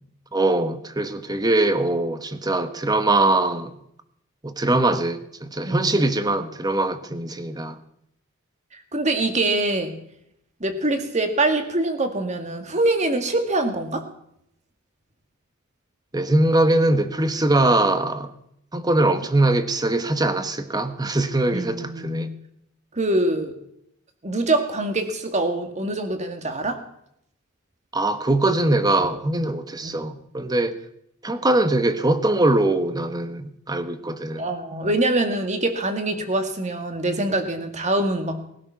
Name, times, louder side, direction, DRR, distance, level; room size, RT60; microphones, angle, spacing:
voice 1, 0.3-3.7 4.4-7.8 16.1-18.3 18.7-22.3 27.9-30.8 31.2-34.5, right 2 dB, 20° right, 1.1 m, -22 dB
voice 2, 8.7-9.9 10.6-14.0 21.5-22.3 22.9-23.6 24.2-26.8 29.8-30.1 34.4-38.4, right 2 dB, 35° right, 1.9 m, -24 dB
20.0 x 12.0 x 5.9 m
head